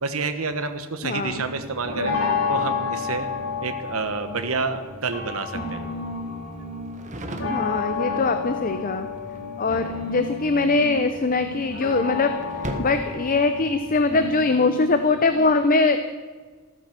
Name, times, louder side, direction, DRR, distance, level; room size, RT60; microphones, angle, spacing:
voice 1, 0.0-2.2 2.5-3.3 3.6-5.9 7.4-7.5, right 4 dB, 85° right, 8 dB, 1.2 m, -29 dB
voice 2, 1.0-1.4 7.5-9.1 9.6-16.0, left 3 dB, 40° left, 9 dB, 0.8 m, -22 dB
sound 1, 1.1-14.3, equal, 35° right, 1.5 m, -41 dB
sound 2, 1.2-15.4, left 4 dB, 85° left, 4.7 m, -31 dB
15.0 x 13.5 x 6.0 m, 1.4 s
head